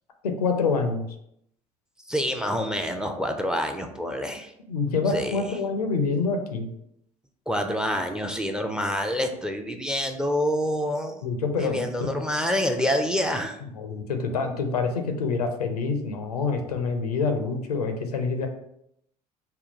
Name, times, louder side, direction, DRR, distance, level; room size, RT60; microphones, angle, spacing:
voice 1, 0.2-1.1 4.7-6.7 11.2-12.2 13.7-18.5, left 4 dB, 85° left, 5 dB, 0.5 m, -26 dB
voice 2, 2.1-4.5 5.1-5.5 7.5-11.2 11.6-13.6, equal, 5° right, 5 dB, 0.4 m, -27 dB
3.7 x 2.2 x 3.9 m, 0.74 s
figure-of-eight pair, 65°, 19 cm